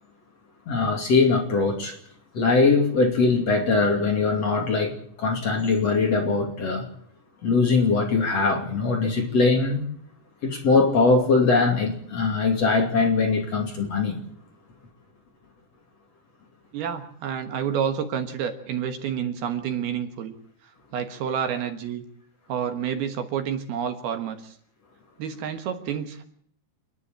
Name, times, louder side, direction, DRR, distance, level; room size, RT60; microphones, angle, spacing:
voice 1, 0.7-1.9 2.3-6.9 7.4-9.8 10.4-14.2, left 4 dB, 40° left, 3.3 m, -21 dB
voice 2, 16.7-20.3 20.9-22.0 22.5-24.5 25.2-26.2, right 8 dB, 70° right, 3.1 m, -29 dB
28.0 x 10.5 x 8.8 m
omnidirectional pair, 5.1 m